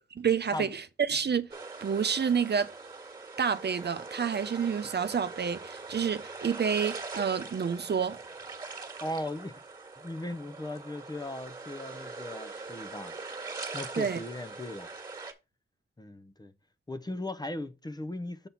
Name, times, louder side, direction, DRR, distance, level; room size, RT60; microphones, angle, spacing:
voice 1, 0.2-1.5 1.8-2.7 3.4-8.2 14.0-14.2, right 7 dB, 55° right, 0.6 m, -29 dB
sound 1, 1.5-15.3, right 3 dB, 20° right, 1.7 m, -42 dB
voice 2, 9.0-9.6 10.0-13.1 13.7-14.9 16.0-16.5 16.9-18.5, left 1 dB, 20° left, 0.7 m, -38 dB
7.0 x 4.1 x 5.7 m
wide cardioid pair, 125°, 21 cm